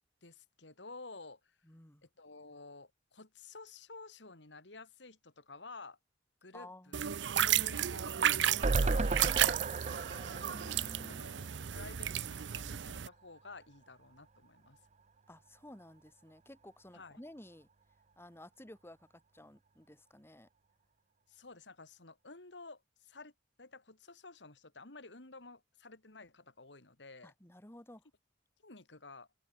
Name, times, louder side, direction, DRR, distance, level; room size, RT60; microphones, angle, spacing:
voice 1, 0.2-1.4 2.0-6.0 6.4-9.1 11.1-14.8 16.9-17.2 21.3-23.3 23.6-27.3 28.6-29.3, left 3 dB, 85° left, 2.9 m, -52 dB
voice 2, 1.6-2.1 6.5-7.0 10.0-11.2 15.3-17.7 18.2-19.1 19.3-20.5 27.2-28.0, left 1 dB, 15° left, 2.0 m, -53 dB
sound 1, 6.9-13.1, right 10 dB, 80° right, 0.6 m, -33 dB
sound 2, 8.6-11.9 12.2-12.3 12.6-12.7, right 3 dB, 40° right, 0.6 m, -34 dB
open air
head